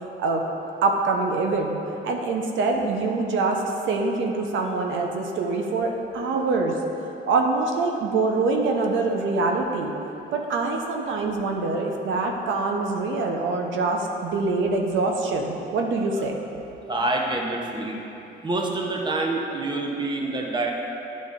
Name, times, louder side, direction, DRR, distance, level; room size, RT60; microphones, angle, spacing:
voice 1, 0.8-1.8 2.0-6.7 7.3-9.9 10.3-16.4, right 3 dB, 75° right, 2 dB, 0.6 m, -24 dB
voice 2, 16.9-18.0 18.4-20.7, right 2 dB, 25° right, 0 dB, 0.8 m, -26 dB
10.0 x 3.9 x 3.6 m, 2.9 s
cardioid pair, 90°, 20 cm